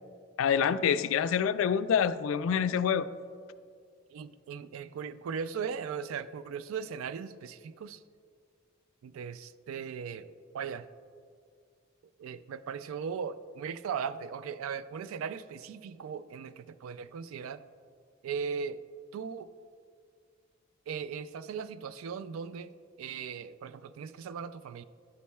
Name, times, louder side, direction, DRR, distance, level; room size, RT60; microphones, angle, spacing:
voice 1, 0.4-3.1, left 7 dB, 75° left, 13 dB, 0.3 m, -26 dB
voice 2, 4.1-8.0 9.0-10.9 12.2-17.6 18.2-18.8 19.1-19.5 20.9-22.7 23.0-24.8, right 6 dB, 90° right, 14 dB, 0.3 m, -38 dB
11.0 x 8.3 x 2.3 m, 2.2 s
head